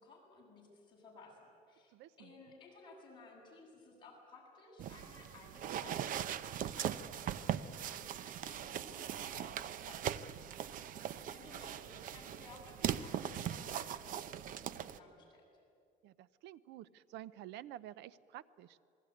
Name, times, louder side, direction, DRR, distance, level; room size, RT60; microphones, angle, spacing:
voice 1, 0.0-10.8 11.2-15.5, left 3 dB, 25° left, -3 dB, 7.7 m, -58 dB
voice 2, 1.9-2.3 16.0-18.8, right 12 dB, 80° right, 17 dB, 0.8 m, -50 dB
sound 1, 4.8-15.0, right 10 dB, 50° right, 0.8 m, -40 dB
27.5 x 21.0 x 9.6 m, 2.4 s
cardioid pair, 160°, 18 cm